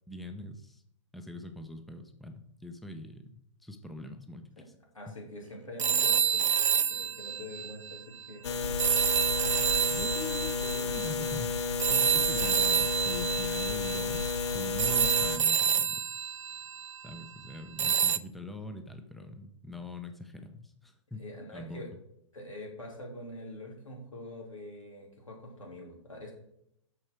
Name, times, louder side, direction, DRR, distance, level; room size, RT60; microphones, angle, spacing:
voice 1, 0.1-0.8 1.1-3.3 3.6-4.7 9.8-16.1 17.0-21.2 21.5-21.8, left 1 dB, ahead, 6 dB, 0.7 m, -43 dB
voice 2, 4.9-9.9 21.1-21.9 22.3-26.3, left 1 dB, 90° left, 0 dB, 3.3 m, -45 dB
sound 1, 5.8-8.3 8.8-17.3 17.8-18.2, right 8 dB, 70° right, 0.5 m, -28 dB
sound 2, 8.4-15.4, left 5 dB, 60° left, 0.8 m, -32 dB
8.8 x 6.4 x 4.6 m, 0.75 s
figure-of-eight pair, 120°, 16 cm